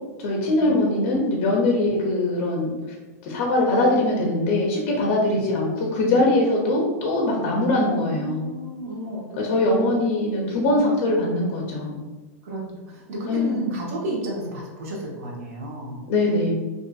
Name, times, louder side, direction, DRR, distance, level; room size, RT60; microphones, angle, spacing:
voice 1, 0.2-2.7 3.2-8.5 9.4-12.0 13.3-13.7 16.1-16.5, left 2 dB, 40° left, -2 dB, 0.5 m, -22 dB
voice 2, 7.6-9.9 10.8-11.0 12.4-16.0, right 1 dB, 65° right, -2 dB, 0.8 m, -33 dB
2.5 x 2.4 x 2.3 m, 1.2 s
supercardioid pair, 155°, 8 cm